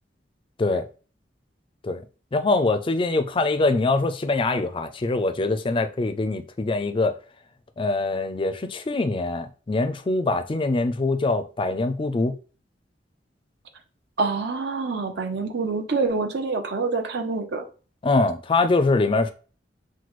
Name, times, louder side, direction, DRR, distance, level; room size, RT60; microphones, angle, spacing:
voice 1, 2.3-7.2 7.8-12.3 18.0-19.3, left 3 dB, 30° left, 0.4 m, -23 dB
voice 2, 14.2-17.6, right 4 dB, 70° right, 0.7 m, -26 dB
5.9 x 2.2 x 3.0 m
head